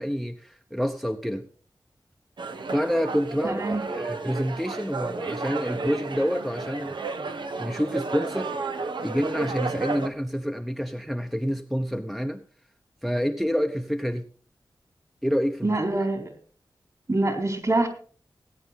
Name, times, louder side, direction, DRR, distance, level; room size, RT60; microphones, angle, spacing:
voice 1, 0.0-1.5 2.7-7.0 7.6-8.5 9.0-12.4 13.0-14.3 15.2-15.8, equal, ahead, 0.8 m, -28 dB
sound 1, 2.4-10.1, right 4 dB, 85° right, 1.1 m, -32 dB
voice 2, 3.4-3.8 15.6-16.3 17.1-17.9, right 2 dB, 45° right, 4.0 m, -25 dB
18.5 x 9.3 x 4.1 m
wide cardioid pair, 60°, 8 cm